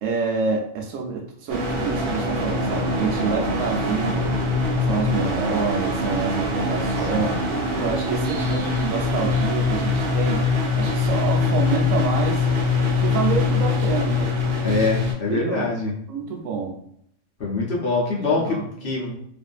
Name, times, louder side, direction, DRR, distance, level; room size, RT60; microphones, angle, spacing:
voice 1, 0.0-4.4 4.8-7.4 7.8-10.4 10.7-12.5 13.0-14.8 15.3-15.7 16.1-16.8 18.2-18.7, right 5 dB, 85° right, 2 dB, 1.0 m, -27 dB
sound 1, 1.5-15.1, left 3 dB, 55° right, 0.8 m, -23 dB
voice 2, 7.0-7.4 8.5-8.6 14.6-15.9 17.4-19.2, left 3 dB, 55° left, -4 dB, 0.8 m, -25 dB
2.5 x 2.5 x 2.3 m, 0.68 s
omnidirectional pair, 1.3 m